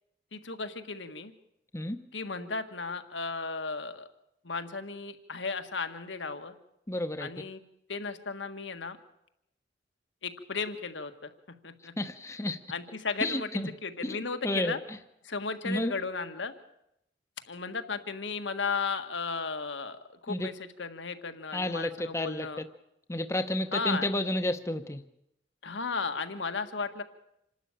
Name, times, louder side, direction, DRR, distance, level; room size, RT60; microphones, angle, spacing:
voice 1, 0.3-1.3 2.1-4.1 4.4-6.5 7.2-7.6 7.9-9.0 10.2-11.3 11.6-11.9 12.7-13.5 13.8-14.8 15.2-16.5 17.5-20.0 20.2-22.6 23.7-24.1 25.6-27.0, left 4 dB, 85° left, 8 dB, 1.7 m, -35 dB
voice 2, 6.9-7.3 12.0-12.6 13.2-13.7 14.0-14.2 14.4-15.0 15.6-15.9 20.3-20.5 21.5-22.5 23.1-25.0, left 1 dB, 15° left, 8 dB, 0.8 m, -31 dB
27.0 x 12.5 x 8.9 m, 0.81 s
head